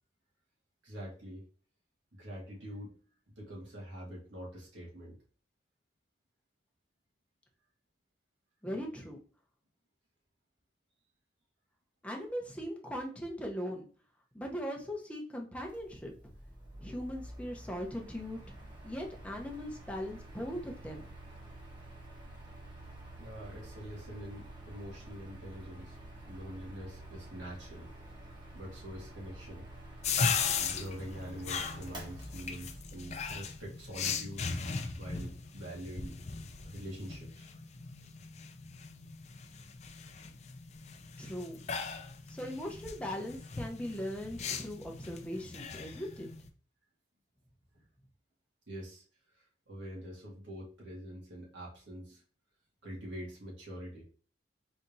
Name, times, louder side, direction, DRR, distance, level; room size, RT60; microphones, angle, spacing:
voice 1, 0.8-1.4 2.2-2.9 3.3-5.2 23.2-26.0 26.3-27.9 28.5-29.7 30.6-34.4 35.0-36.2 36.6-37.5 47.7-47.8 48.7-49.0 49.3-52.2 52.8-54.0, equal, 85° right, -3 dB, 2.0 m, -45 dB
voice 2, 8.6-9.2 12.0-13.9 14.3-16.1 16.8-18.4 18.8-21.1 41.2-41.6 42.3-46.3, equal, 5° left, 1 dB, 0.7 m, -39 dB
Mechanical fan, 15.6-35.3, right 1 dB, 25° right, 1.0 m, -49 dB
sound 1, 30.0-46.5, left 5 dB, 35° left, 0.4 m, -38 dB
4.1 x 3.3 x 2.6 m, 0.42 s
head